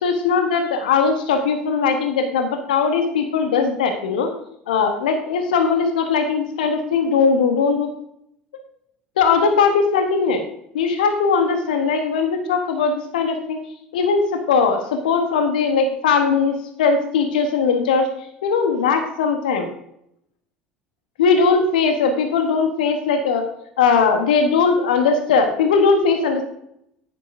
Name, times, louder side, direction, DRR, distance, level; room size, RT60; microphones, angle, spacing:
voice 1, 0.0-4.3 4.7-7.9 9.2-10.4 10.7-13.6 13.9-18.1 18.4-19.7 21.2-23.4 23.8-26.4, left 5 dB, 70° left, 6 dB, 1.0 m, -19 dB
10.0 x 9.5 x 2.6 m, 0.75 s
figure-of-eight pair, 65°, 5 cm